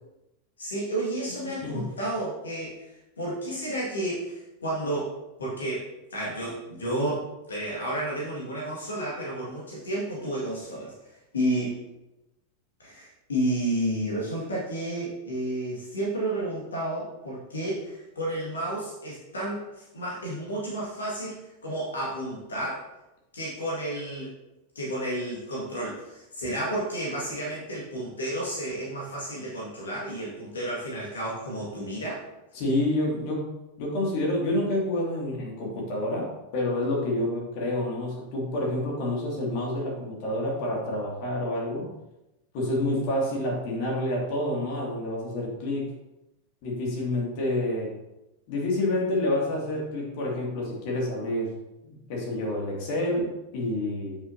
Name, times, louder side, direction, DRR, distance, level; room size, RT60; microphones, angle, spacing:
voice 1, 0.6-5.1 5.4-5.8 6.1-11.8 12.8-21.4 21.6-22.9 23.3-24.3 24.8-32.2, right 1 dB, 70° left, -5 dB, 1.9 m, -31 dB
voice 2, 32.5-33.5 33.8-41.9 42.5-45.9 46.6-47.9 48.5-51.5 51.8-54.2, left 1 dB, 45° left, -3 dB, 2.3 m, -28 dB
7.9 x 6.0 x 2.8 m, 0.95 s
figure-of-eight pair, 90°, 0 cm